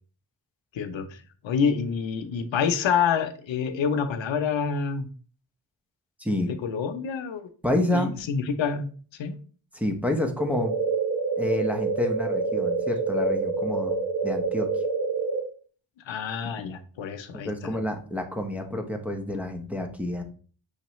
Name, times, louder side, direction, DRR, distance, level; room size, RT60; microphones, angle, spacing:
voice 1, 0.7-1.2 1.4-5.1 6.4-7.4 7.9-8.9 9.2-9.4 16.1-17.7, left 6 dB, 90° left, 8 dB, 0.6 m, -27 dB
voice 2, 7.6-8.2 9.7-10.7 11.4-14.0 14.2-14.7 16.6-16.7 17.3-20.2, left 1 dB, 5° right, 2 dB, 0.7 m, -28 dB
sound 1, 10.4-15.4, right 4 dB, 60° right, 1.0 m, -27 dB
5.8 x 3.1 x 3.0 m, 0.41 s
wide cardioid pair, 105°, 45 cm